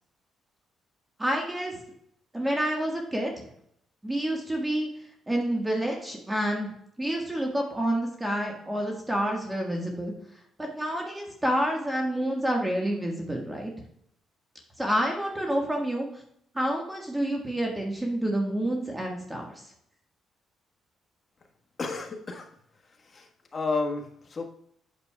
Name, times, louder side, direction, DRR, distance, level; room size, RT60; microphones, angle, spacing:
voice 1, 1.2-1.8 2.3-3.5 4.0-4.9 5.3-6.7 7.0-10.1 10.6-13.7 14.8-16.2 16.5-19.5, right 1 dB, 10° right, 0 dB, 1.5 m, -28 dB
voice 2, 21.8-22.5 23.0-24.4, left 3 dB, 35° left, 3 dB, 1.3 m, -32 dB
8.5 x 6.6 x 2.3 m, 0.70 s
cardioid pair, 90°, 0 cm